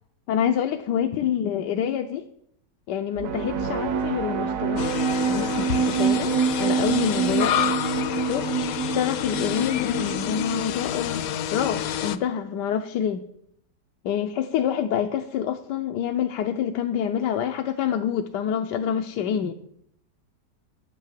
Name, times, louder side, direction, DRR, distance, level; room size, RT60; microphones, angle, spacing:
voice 1, 0.3-2.3 2.9-7.5 8.2-13.2 14.0-19.5, left 9 dB, 90° left, 5 dB, 1.3 m, -27 dB
sound 1, 3.2-10.7, right 6 dB, 60° right, 1.1 m, -26 dB
sound 2, 4.8-12.2, left 10 dB, 65° left, 1.0 m, -28 dB
9.7 x 8.9 x 7.5 m, 0.70 s
omnidirectional pair, 1.8 m